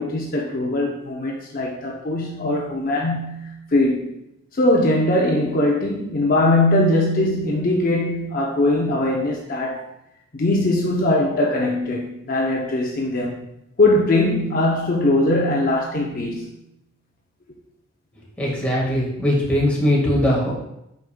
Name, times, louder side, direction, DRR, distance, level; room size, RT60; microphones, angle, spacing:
voice 1, 0.0-4.1 4.5-9.8 10.3-13.5 13.8-16.5, left 1 dB, 45° left, -1 dB, 0.6 m, -21 dB
voice 2, 18.4-20.5, left 1 dB, 5° left, -6 dB, 1.6 m, -20 dB
8.1 x 5.2 x 2.2 m, 0.84 s
head